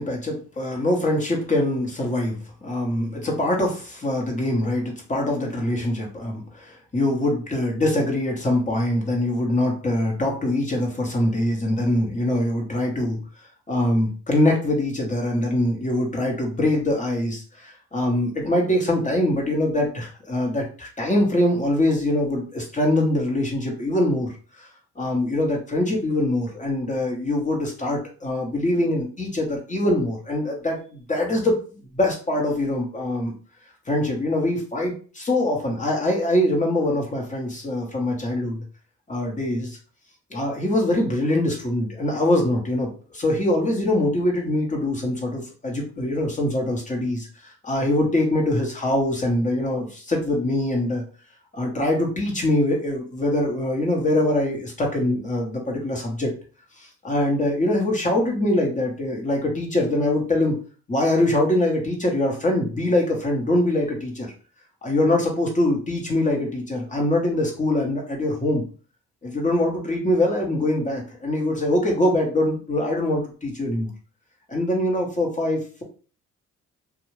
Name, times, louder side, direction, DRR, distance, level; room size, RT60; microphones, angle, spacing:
voice 1, 0.0-13.2 13.7-24.3 24.6-24.7 25.0-33.3 33.9-38.6 39.1-39.8 40.3-51.0 51.5-56.3 56.8-60.6 60.9-64.3 64.8-68.6 69.2-73.9 74.5-75.8, left 1 dB, 25° left, -1 dB, 1.1 m, -23 dB
2.6 x 2.4 x 3.1 m, 0.38 s
cardioid pair, 90°, 30 cm